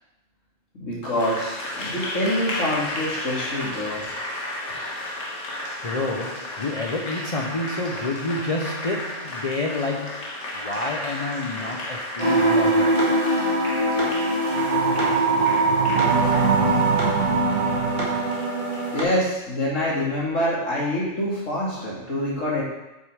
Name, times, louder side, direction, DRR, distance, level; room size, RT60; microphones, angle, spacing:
voice 1, 0.8-4.0 18.9-22.6, left 1 dB, 85° left, -6 dB, 2.9 m, -26 dB
Applause, 1.0-18.9, left 1 dB, 65° left, 1.8 m, -34 dB
voice 2, 5.8-13.0, left 2 dB, 35° left, 0 dB, 0.6 m, -29 dB
sound 1, 12.2-19.0, right 1 dB, 40° right, 2.0 m, -23 dB
sound 2, 14.5-18.4, right 6 dB, 90° right, 1.0 m, -23 dB
7.6 x 6.4 x 4.9 m, 0.98 s
omnidirectional pair, 1.3 m